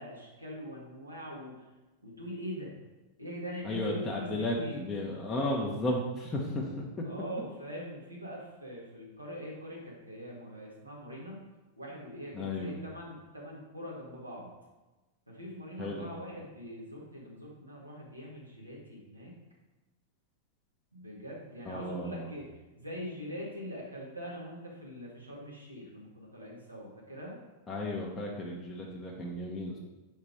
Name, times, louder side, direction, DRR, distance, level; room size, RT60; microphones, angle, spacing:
voice 1, 0.0-1.6 2.0-2.7 3.2-4.8 7.0-11.4 11.8-14.5 15.3-19.3 20.9-27.4, equal, 90° right, -4 dB, 1.6 m, -43 dB
voice 2, 3.6-6.8 12.3-12.7 15.8-16.0 21.7-22.3 27.7-29.8, left 1 dB, 15° left, -3 dB, 0.9 m, -34 dB
5.0 x 4.3 x 4.9 m, 1.1 s
figure-of-eight pair, 95°, 0 cm